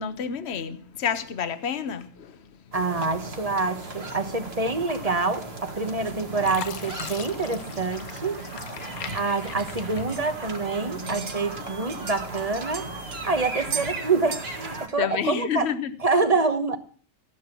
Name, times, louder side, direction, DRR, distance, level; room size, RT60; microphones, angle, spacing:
voice 1, 0.0-2.4 15.0-15.9, left 7 dB, 50° left, 1.2 m, -29 dB
voice 2, 2.7-8.4 8.8-12.9 13.2-15.7 16.0-16.8, right 3 dB, 25° right, 1.1 m, -26 dB
sound 1, 2.7-14.9, right 2 dB, 40° right, 2.2 m, -36 dB
Fill (with liquid), 5.7-6.1 6.4-10.8 11.3-12.1 12.6-12.8, left 8 dB, 70° left, 1.3 m, -41 dB
sound 2, 9.1-10.6 10.9-11.4 11.7-13.2 13.7-13.9 14.3-14.6 14.8-14.9 15.5-15.6, right 7 dB, 85° right, 2.4 m, -37 dB
14.5 x 11.0 x 6.0 m
omnidirectional pair, 1.6 m